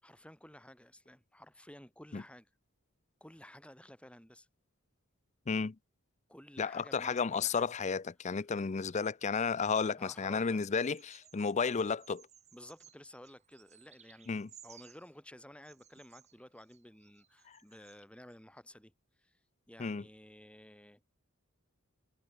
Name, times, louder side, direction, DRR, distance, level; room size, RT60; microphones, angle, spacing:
voice 1, 0.0-2.5 3.2-4.5 6.3-7.7 10.0-10.6 12.5-18.9 19.2-19.3 19.7-21.1, left 1 dB, 5° left, 5.8 m, -54 dB
voice 2, 5.5-5.8 6.6-12.3 14.3-14.5 17.5-17.6 19.8-20.0, left 5 dB, 35° left, 0.5 m, -33 dB
Bird vocalization bird call bird song, 10.8-11.6 12.0-15.1 15.6-18.0 18.3-18.4, right 9 dB, 35° right, 6.5 m, -61 dB
head